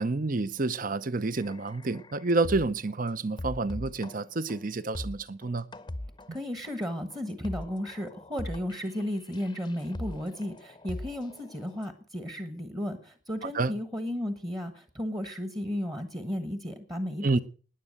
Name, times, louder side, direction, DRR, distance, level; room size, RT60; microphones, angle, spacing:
voice 1, 0.0-5.7 13.4-13.7 17.2-17.4, right 3 dB, 40° right, 0.7 m, -29 dB
sound 1, 1.4-3.0 3.4-11.9, left 1 dB, 20° left, 0.7 m, -41 dB
voice 2, 6.3-17.4, left 1 dB, 20° right, 1.3 m, -34 dB
18.5 x 10.0 x 6.5 m
head